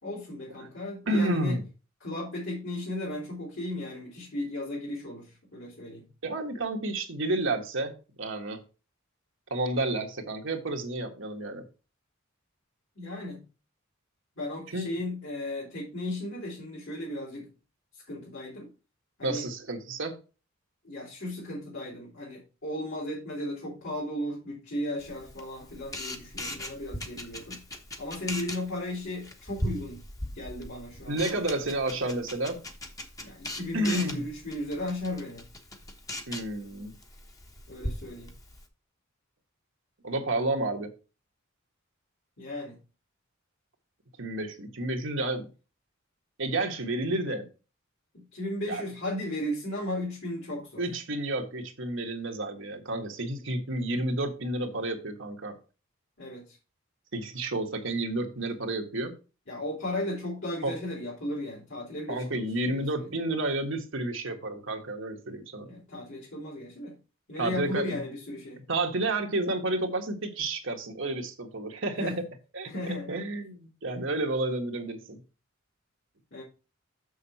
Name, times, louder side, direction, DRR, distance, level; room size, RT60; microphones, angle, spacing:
voice 1, 0.0-1.6 2.0-6.1 12.9-13.4 14.4-17.5 17.9-18.7 19.2-19.5 20.8-27.6 28.0-30.0 30.3-31.3 33.2-35.5 37.7-38.3 42.4-42.8 48.1-50.8 56.2-56.6 59.5-63.1 65.6-67.0 67.3-68.7 71.9-72.2 72.6-73.3 76.3-76.4, left 1 dB, 65° left, 3.1 m, -35 dB
voice 2, 1.1-1.6 6.2-8.6 9.5-11.6 14.7-15.0 19.2-20.2 31.1-32.6 33.2-33.3 33.7-34.2 36.3-36.9 40.0-40.9 44.2-45.5 46.4-47.5 48.7-48.8 50.8-55.6 57.1-59.2 60.6-60.7 62.1-65.7 67.4-68.0 68.7-72.1 72.5-72.7 73.1-75.2, right 2 dB, 65° right, 1.6 m, -30 dB
Camera, 25.0-38.6, left 1 dB, 15° left, 1.2 m, -40 dB
6.8 x 6.5 x 4.2 m
head